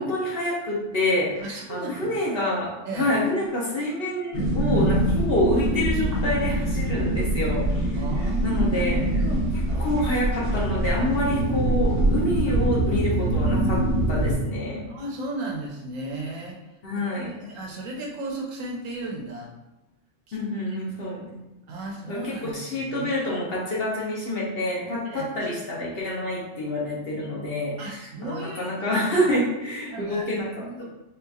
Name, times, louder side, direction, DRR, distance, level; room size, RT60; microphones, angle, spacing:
voice 1, 0.0-2.7 3.0-7.9 8.4-9.2 9.8-13.8 14.1-14.9 16.8-17.3 20.3-21.5 22.1-30.5 30.8-30.9, left 1 dB, 55° left, -4 dB, 0.8 m, -27 dB
voice 2, 1.4-2.2 2.9-3.1 7.9-9.5 14.9-16.6 17.0-19.5 20.3-20.4 20.6-20.8 21.7-23.1 25.1-25.5 27.8-28.6 29.9-30.8, right 2 dB, 75° right, -1 dB, 1.1 m, -35 dB
sound 1, 4.3-14.3, right 1 dB, 50° right, 1.0 m, -24 dB
4.0 x 2.8 x 2.3 m, 1.0 s
omnidirectional pair, 1.4 m